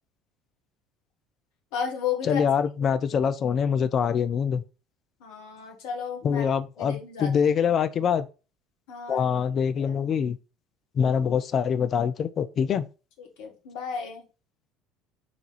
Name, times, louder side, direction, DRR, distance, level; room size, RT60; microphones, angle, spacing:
voice 1, 1.7-2.5 5.2-6.5 6.8-7.5 8.9-9.2 9.8-9.9 13.2-14.2, left 7 dB, 60° left, 1.1 m, -33 dB
voice 2, 2.2-4.6 6.2-8.3 9.1-10.4 11.0-12.9, left 7 dB, 40° left, 0.4 m, -24 dB
3.5 x 3.4 x 4.0 m
figure-of-eight pair, 60°, 0 cm